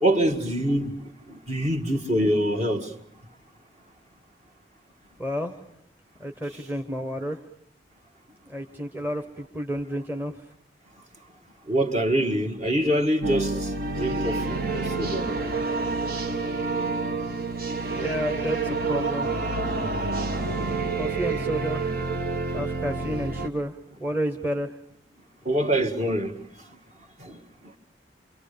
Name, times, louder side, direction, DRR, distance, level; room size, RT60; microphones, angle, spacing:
voice 1, 0.0-2.9 11.7-13.7 14.0-15.4 17.1-17.2 19.7-19.9 20.7-21.4 22.6-22.7 25.5-26.5 27.2-27.4, right 1 dB, 40° right, 2.0 m, -25 dB
voice 2, 5.2-5.6 6.2-7.4 8.5-10.3 17.9-19.3 21.0-21.9 22.5-24.8, equal, 10° right, 1.1 m, -31 dB
sound 1, 13.2-23.5, right 3 dB, 55° right, 1.4 m, -28 dB
27.5 x 24.5 x 6.8 m
head